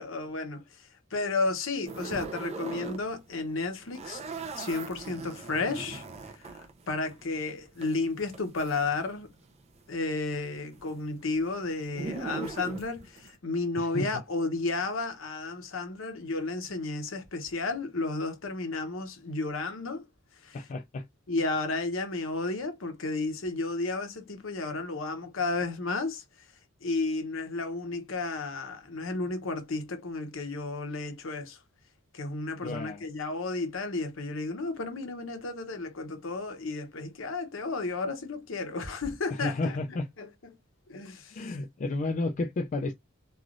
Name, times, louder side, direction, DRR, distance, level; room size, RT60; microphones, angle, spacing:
voice 1, 0.0-4.2 4.6-6.0 6.4-9.3 9.9-20.0 20.4-20.6 21.3-26.2 26.8-31.6 32.1-40.5 40.9-41.6, left 3 dB, 65° left, 0.8 m, -33 dB
sound 1, 1.9-3.0 3.3-9.5 9.7-13.4, right 4 dB, 30° right, 0.5 m, -40 dB
voice 2, 13.8-14.2 20.5-21.0 32.6-33.1 39.3-40.1 41.3-42.9, left 2 dB, 35° left, 0.3 m, -32 dB
3.2 x 2.4 x 2.5 m
head